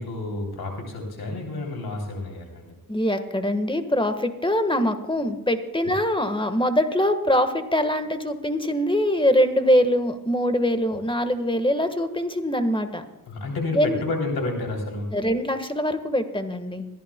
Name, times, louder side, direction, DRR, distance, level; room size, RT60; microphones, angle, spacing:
voice 1, 0.0-2.7 13.3-15.2, left 2 dB, 90° left, 1 dB, 3.2 m, -30 dB
voice 2, 2.9-13.0 13.7-14.0 15.1-16.9, equal, 15° left, 9 dB, 1.4 m, -23 dB
26.5 x 11.0 x 2.2 m, 1.0 s
cardioid pair, 60°, 36 cm